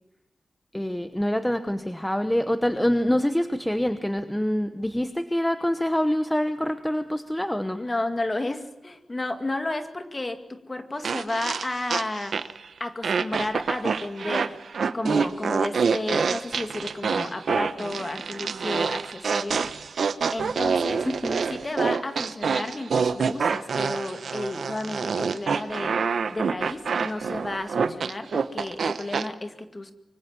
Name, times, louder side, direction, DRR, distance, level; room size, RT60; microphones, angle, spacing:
voice 1, 0.7-7.8 21.0-21.4, equal, 5° left, 9 dB, 1.0 m, -25 dB
voice 2, 7.7-12.4 12.8-14.5 14.9-19.7 20.3-21.1 21.5-26.0 26.3-29.9, left 2 dB, 25° left, 7 dB, 2.2 m, -32 dB
sound 1, 11.0-12.6 13.0-29.3, right 5 dB, 75° right, 1.1 m, -26 dB
25.0 x 24.5 x 7.5 m, 1.0 s
wide cardioid pair, 175°, 0 cm